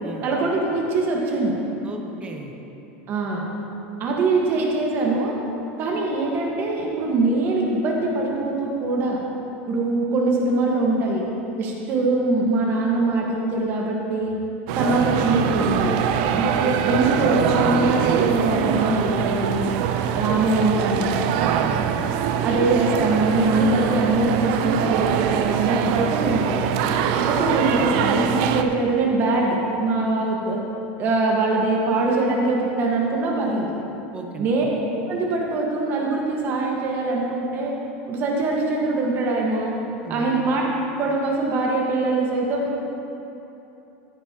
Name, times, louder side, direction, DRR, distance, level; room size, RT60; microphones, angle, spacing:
voice 1, 0.2-1.6 3.1-3.4 4.0-5.4 5.8-9.2 9.7-11.2 11.6-14.4 14.8-16.0 16.3-19.7 20.1-21.2 22.4-26.6 27.3-30.6 31.0-33.7 34.4-34.7 35.1-37.7 38.1-39.8 40.1-40.7 41.0-42.8, right 2 dB, 35° right, -1 dB, 1.4 m, -22 dB
voice 2, 1.8-2.5 21.3-21.9 34.1-34.5 40.0-40.3, right 3 dB, 20° right, 2 dB, 0.9 m, -35 dB
sound 1, 14.7-28.6, right 8 dB, 55° right, 0.5 m, -23 dB
14.5 x 9.8 x 2.9 m, 2.9 s
supercardioid pair, 155°, 6 cm